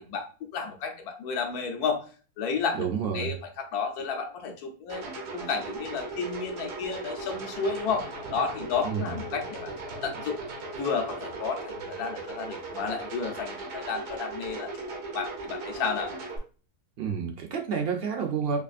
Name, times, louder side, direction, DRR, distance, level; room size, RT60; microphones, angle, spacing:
voice 1, 0.0-2.0 2.4-2.9 3.1-9.7 10.0-10.4 10.7-14.7 15.1-16.1, left 5 dB, 80° left, 4 dB, 1.2 m, -32 dB
voice 2, 2.7-3.3 8.8-9.2 17.0-18.6, right 6 dB, 65° right, 3 dB, 0.5 m, -29 dB
sound 1, 4.9-16.4, right 3 dB, 90° right, 1.5 m, -38 dB
4.8 x 2.5 x 2.5 m, 0.37 s
omnidirectional pair, 1.6 m